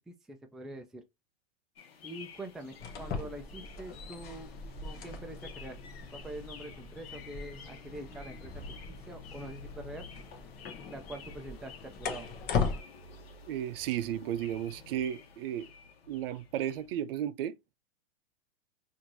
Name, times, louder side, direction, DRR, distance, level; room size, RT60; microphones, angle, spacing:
voice 1, 0.1-1.0 2.0-4.5 4.8-5.8 6.1-8.5 8.9-10.1 10.9-12.3, right 1 dB, ahead, 0.3 m, -44 dB
sound 1, 1.8-17.0, left 5 dB, 85° left, 1.0 m, -51 dB
sound 2, 2.7-12.8, left 5 dB, 35° left, 0.8 m, -39 dB
voice 2, 13.5-15.7 16.1-17.6, right 11 dB, 70° right, 0.5 m, -34 dB
4.4 x 2.6 x 2.6 m
hypercardioid pair, 125°, 30 cm